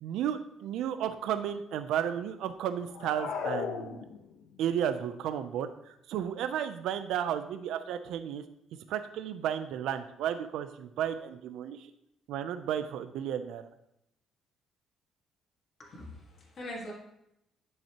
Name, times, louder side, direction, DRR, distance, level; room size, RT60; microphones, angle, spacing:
voice 1, 0.0-4.0 4.6-8.4 8.9-11.9 12.3-13.6, right 9 dB, 75° right, 10 dB, 0.5 m, -33 dB
sound 1, 2.9-4.5, left 6 dB, 75° left, 0.8 m, -36 dB
voice 2, 15.8-16.9, left 1 dB, 35° left, -4 dB, 1.8 m, -42 dB
10.5 x 5.6 x 2.9 m, 0.81 s
cardioid pair, 170°, 0 cm